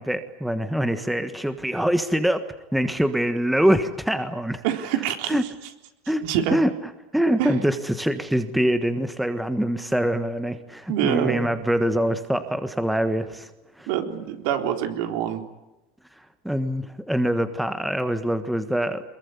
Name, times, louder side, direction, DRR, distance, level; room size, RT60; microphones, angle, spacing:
voice 1, 0.0-2.4 2.7-4.6 5.3-5.5 6.1-6.2 6.5-6.7 7.1-13.5 13.8-13.9 16.4-19.0, equal, ahead, 9 dB, 1.5 m, -24 dB
voice 2, 4.6-5.4 6.2-6.6 7.4-7.6 10.9-11.5 13.9-15.4, right 10 dB, 65° right, 6 dB, 3.8 m, -25 dB
23.5 x 22.0 x 9.8 m, 1.0 s
supercardioid pair, 140°, 0 cm